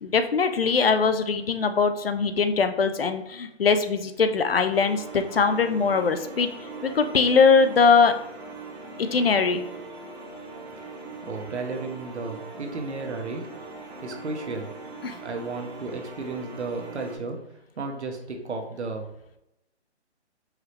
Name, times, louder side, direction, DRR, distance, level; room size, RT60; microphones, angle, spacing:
voice 1, 0.0-8.1 9.0-9.6 15.0-15.2, left 5 dB, 55° left, 8 dB, 0.5 m, -21 dB
sound 1, 4.7-17.2, right 3 dB, 40° right, 1.2 m, -41 dB
voice 2, 11.2-13.5 14.0-14.7 15.2-17.4 17.8-19.0, right 3 dB, 70° right, 4 dB, 1.0 m, -33 dB
4.7 x 3.1 x 3.2 m, 0.84 s
hypercardioid pair, 170°, 35 cm